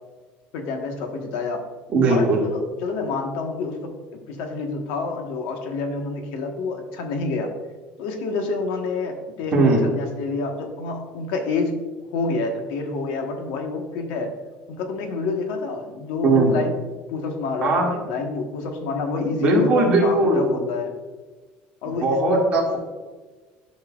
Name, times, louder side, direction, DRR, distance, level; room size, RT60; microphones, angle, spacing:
voice 1, 0.5-1.6 2.1-7.5 8.0-11.7 12.1-14.3 14.7-16.7 17.1-20.9 21.8-22.2, left 3 dB, 85° left, 4 dB, 1.3 m, -28 dB
voice 2, 1.9-2.4 9.5-9.8 16.2-16.6 17.6-17.9 19.4-20.7 21.9-22.8, right 2 dB, 35° right, -3 dB, 2.1 m, -19 dB
11.5 x 5.6 x 2.4 m, 1.3 s
cardioid pair, 155°, 4 cm